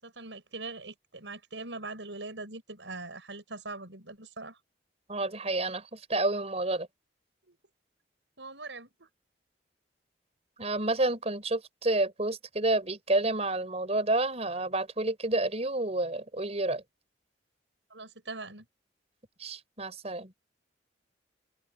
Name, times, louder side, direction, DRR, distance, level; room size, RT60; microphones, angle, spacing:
voice 1, 0.0-4.6 7.5-7.6 8.4-9.1 17.9-18.7, right 3 dB, 85° right, 6.7 m, -42 dB
voice 2, 5.1-6.9 10.6-16.8 19.4-20.3, right 2 dB, 35° right, 5.1 m, -29 dB
head